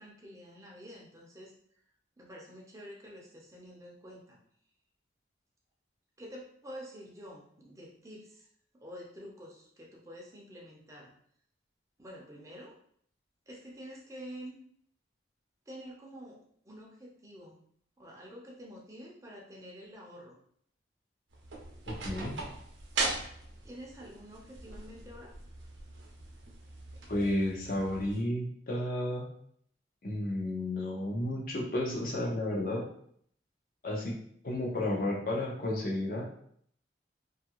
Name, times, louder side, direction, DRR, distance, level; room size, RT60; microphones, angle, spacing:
voice 1, 0.0-1.5 2.2-4.4 6.2-8.5 8.7-11.1 12.0-12.8 13.5-14.6 15.7-17.6 18.0-20.4 23.6-25.4, equal, 15° right, -3 dB, 0.5 m, -48 dB
sound 1, 21.3-28.2, right 3 dB, 75° right, 0.6 m, -40 dB
voice 2, 21.9-22.4 27.1-29.3 30.0-32.8 33.8-34.2 34.4-36.2, left 1 dB, 45° left, -2 dB, 0.7 m, -32 dB
2.7 x 2.4 x 2.9 m, 0.64 s
head